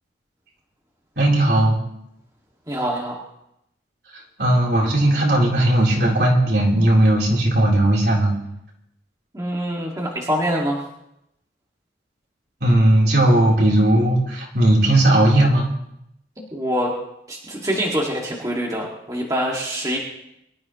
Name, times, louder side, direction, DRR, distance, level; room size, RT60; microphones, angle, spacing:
voice 1, 1.2-1.8 4.1-8.3 12.6-15.7, right 1 dB, 60° right, -3 dB, 4.0 m, -17 dB
voice 2, 2.7-3.2 9.3-10.8 16.4-17.0 17.3-20.0, equal, 20° right, -3 dB, 2.2 m, -25 dB
23.5 x 13.0 x 3.2 m, 0.81 s
head